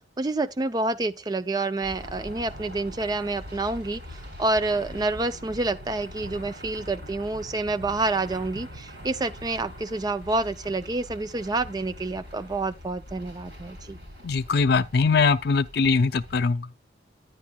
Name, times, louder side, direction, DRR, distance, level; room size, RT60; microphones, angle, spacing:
voice 1, 0.2-4.0 4.4-14.0, right 2 dB, 20° right, 0.4 m, -28 dB
sound 1, 1.8-16.4, equal, 65° right, 4.3 m, -43 dB
voice 2, 14.2-16.7, left 4 dB, 60° left, 0.5 m, -22 dB
10.0 x 9.5 x 2.2 m
head